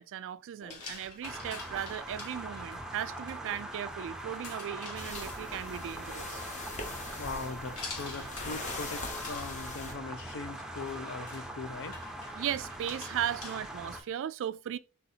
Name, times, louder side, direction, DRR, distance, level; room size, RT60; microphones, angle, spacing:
voice 1, 0.0-6.4 12.4-14.8, right 10 dB, 60° right, 0.3 m, -37 dB
sound 1, 0.6-14.1, left 4 dB, 85° left, 1.7 m, -49 dB
sound 2, 1.2-14.0, right 1 dB, 5° right, 0.5 m, -42 dB
sound 3, 5.0-9.9, left 2 dB, 35° left, 0.9 m, -42 dB
voice 2, 7.2-12.0, left 4 dB, 60° left, 0.6 m, -40 dB
4.1 x 4.0 x 2.7 m
head